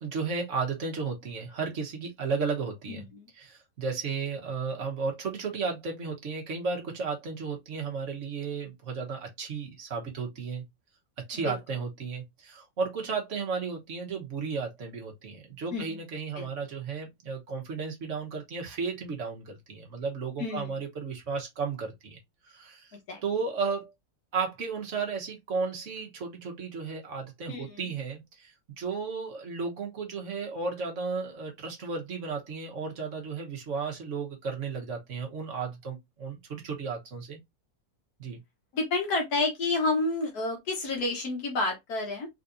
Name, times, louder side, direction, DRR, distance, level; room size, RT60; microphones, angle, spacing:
voice 1, 0.0-3.0 3.4-10.6 11.3-22.2 22.5-22.9 23.2-23.9 24.3-37.4 38.2-38.4, right 5 dB, 55° right, 1.4 m, -34 dB
voice 2, 2.9-3.3 11.3-11.6 15.7-16.0 16.3-16.5 20.4-20.8 23.1-23.2 27.5-27.9 38.7-42.3, left 3 dB, 80° left, 1.7 m, -30 dB
4.1 x 3.9 x 2.6 m
omnidirectional pair, 1.6 m